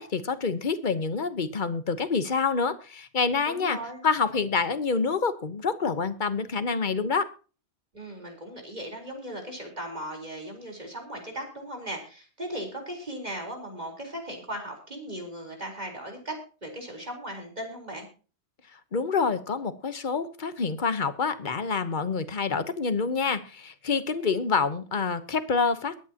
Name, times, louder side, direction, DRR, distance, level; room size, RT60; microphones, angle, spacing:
voice 1, 0.0-3.8 4.0-7.3 18.9-25.9, left 5 dB, 50° left, 12 dB, 1.2 m, -27 dB
voice 2, 3.5-4.0 7.9-16.3 16.6-18.1, right 1 dB, 40° right, 3 dB, 4.3 m, -37 dB
22.0 x 9.8 x 2.9 m, 0.36 s
omnidirectional pair, 1.1 m